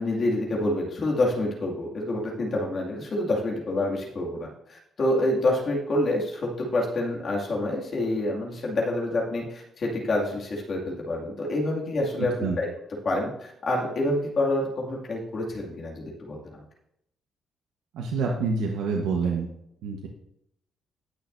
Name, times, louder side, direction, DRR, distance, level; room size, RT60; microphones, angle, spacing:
voice 1, 0.0-12.7 13.0-16.6, left 1 dB, 50° left, -2 dB, 2.3 m, -27 dB
voice 2, 17.9-19.5 19.8-20.1, right 4 dB, 90° right, 0 dB, 1.2 m, -27 dB
19.0 x 6.4 x 2.6 m, 0.77 s
cardioid pair, 90°, 0 cm